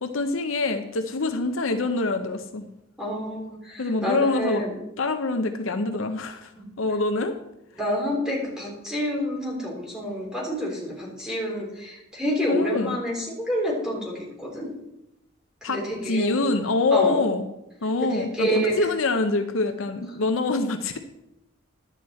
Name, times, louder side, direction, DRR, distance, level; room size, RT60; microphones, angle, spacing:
voice 1, 0.0-2.7 3.8-4.6 5.0-6.5 6.8-7.3 12.5-13.0 15.6-15.8 16.1-17.4 17.8-21.0, left 3 dB, 65° left, 7 dB, 0.7 m, -25 dB
voice 2, 3.0-4.8 6.6-6.7 7.8-14.7 15.7-16.3 16.9-17.2 18.0-18.7, equal, 5° right, -3 dB, 3.1 m, -28 dB
11.0 x 8.2 x 4.2 m, 0.87 s
head